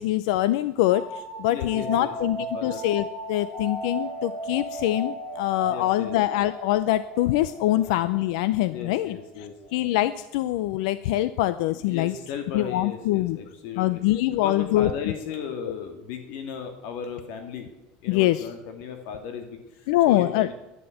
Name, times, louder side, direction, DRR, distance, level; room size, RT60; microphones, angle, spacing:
voice 1, 0.0-9.2 9.7-12.1 12.5-13.4 13.8-14.9 18.1-18.4 19.9-20.5, left 15 dB, 75° left, 15 dB, 0.6 m, -24 dB
sound 1, 0.8-10.2, right 2 dB, 40° left, 6.2 m, -37 dB
voice 2, 1.5-2.8 5.7-6.2 7.7-7.8 8.7-9.5 11.7-14.0 14.3-17.7 18.0-20.5, left 6 dB, 60° left, 6 dB, 2.2 m, -36 dB
11.5 x 10.0 x 9.2 m, 1.0 s
cardioid pair, 170°, 4 cm